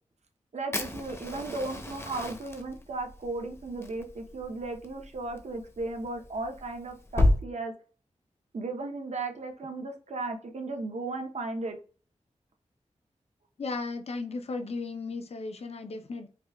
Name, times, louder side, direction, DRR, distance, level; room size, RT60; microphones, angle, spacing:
voice 1, 0.5-7.7 8.5-11.8, right 2 dB, 65° right, 0.8 m, -35 dB
Fire, 0.7-7.4, left 1 dB, 20° left, 0.7 m, -32 dB
voice 2, 13.6-16.3, left 3 dB, 55° left, 0.6 m, -35 dB
4.7 x 2.2 x 2.3 m
cardioid pair, 55°, 12 cm